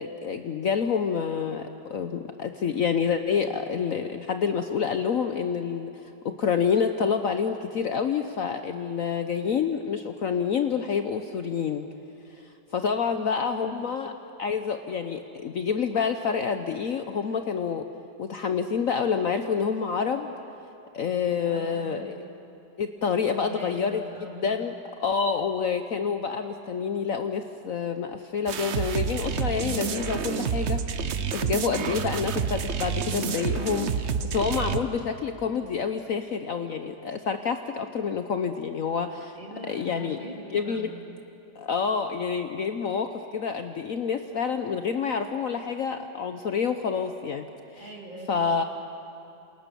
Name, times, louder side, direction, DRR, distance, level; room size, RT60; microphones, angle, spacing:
voice 1, 0.0-11.9 12.3-14.1 14.4-17.9 18.2-20.3 20.9-22.2 22.8-24.0 24.4-24.7 25.0-30.8 31.3-39.4 39.7-40.2 40.5-40.9 41.5-47.5 47.7-47.9 48.3-48.6, left 6 dB, 55° left, 7 dB, 1.1 m, -28 dB
voice 2, 13.1-13.8 21.4-22.2 23.4-24.5 31.5-31.9 39.3-41.2 47.8-48.7, right 1 dB, 25° right, -1 dB, 3.4 m, -43 dB
sound 1, 28.5-34.8, right 6 dB, 45° right, 1.0 m, -29 dB
28.0 x 28.0 x 7.0 m, 2.8 s
omnidirectional pair, 1.9 m